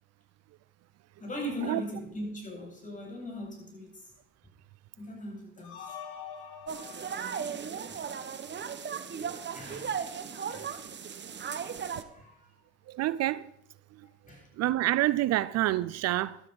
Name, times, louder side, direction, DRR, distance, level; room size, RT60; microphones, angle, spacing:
voice 1, 1.2-4.1 5.0-5.9 7.6-8.1 8.5-8.6 9.3-10.0 10.5-10.8 12.0-12.5 14.3-14.5, equal, 25° left, 7.8 m, -40 dB
sound 1, 5.6-8.8, left 7 dB, 70° left, 3.0 m, -46 dB
sound 2, 6.7-12.0, right 7 dB, 35° right, 1.4 m, -36 dB
voice 2, 12.9-13.5 14.6-16.4, right 15 dB, 55° right, 0.6 m, -27 dB
14.0 x 12.0 x 5.4 m
hypercardioid pair, 70°, 31 cm